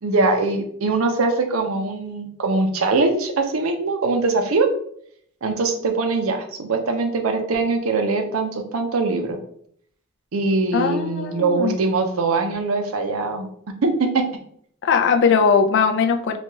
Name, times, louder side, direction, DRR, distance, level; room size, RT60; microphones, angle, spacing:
voice 1, 0.0-4.7 5.4-9.4 10.3-13.5 13.8-14.2, right 3 dB, 75° right, 5 dB, 0.6 m, -22 dB
voice 2, 10.7-11.8 14.8-16.4, left 5 dB, 55° left, 6 dB, 0.4 m, -19 dB
4.0 x 2.3 x 2.9 m, 0.65 s
head